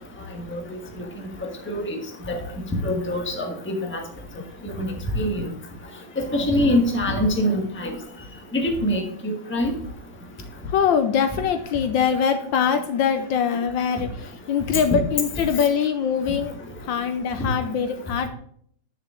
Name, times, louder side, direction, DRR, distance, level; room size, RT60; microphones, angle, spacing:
voice 1, 1.7-2.0 2.3-2.4 2.8-4.0 4.6-4.9 5.1-5.5 6.2-7.9 8.5-9.7 17.4-17.5, left 1 dB, 5° left, 2 dB, 1.0 m, -24 dB
voice 2, 10.6-18.3, left 7 dB, 75° left, 8 dB, 1.3 m, -23 dB
9.8 x 6.4 x 3.7 m, 0.63 s
omnidirectional pair, 2.3 m